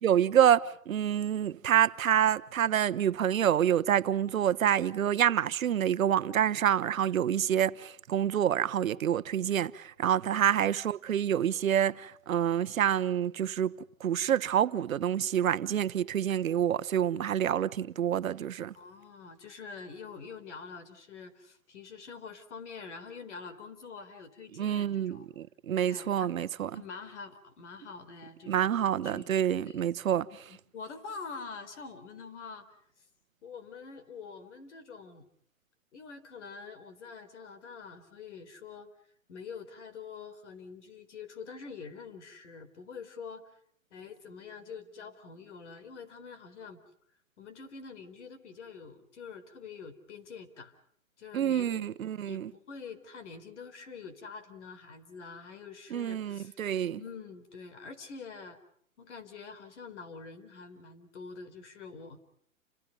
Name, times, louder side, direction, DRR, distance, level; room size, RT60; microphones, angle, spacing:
voice 1, 0.0-18.7 24.6-26.8 28.5-30.3 51.3-52.5 55.9-57.0, right 10 dB, 80° right, 1.1 m, -27 dB
voice 2, 18.7-25.3 25.9-26.3 26.7-29.3 29.6-29.8 30.3-32.7 33.4-35.3 35.9-38.9 39.3-43.6 43.9-46.8 47.4-50.7 51.2-56.6 57.0-58.6 59.0-62.2, left 5 dB, 55° left, 4.1 m, -46 dB
30.0 x 27.0 x 5.5 m
hypercardioid pair, 165°, 41 cm